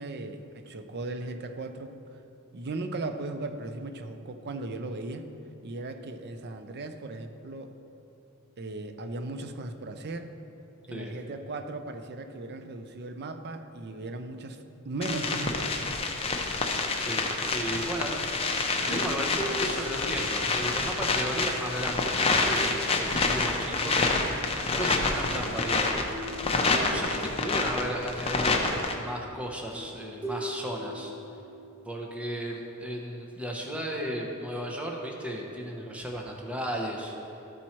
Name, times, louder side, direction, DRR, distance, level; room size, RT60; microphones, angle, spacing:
voice 1, 0.0-2.2 2.5-5.3 5.6-7.8 8.6-10.3 10.9-15.9 24.7-25.6, right 2 dB, 50° right, 8 dB, 0.5 m, -37 dB
sound 1, 15.0-28.9, left 3 dB, 25° left, 0.7 m, -28 dB
voice 2, 17.0-18.2 18.9-24.0 24.7-25.9 26.6-31.1 31.9-37.1, equal, 5° right, -1 dB, 0.8 m, -35 dB
sound 2, 18.9-21.2 22.5-22.8 23.1-24.4 26.1-27.8 29.7-32.0, equal, 20° right, 1.8 m, -40 dB
13.0 x 4.5 x 4.3 m, 2.8 s
head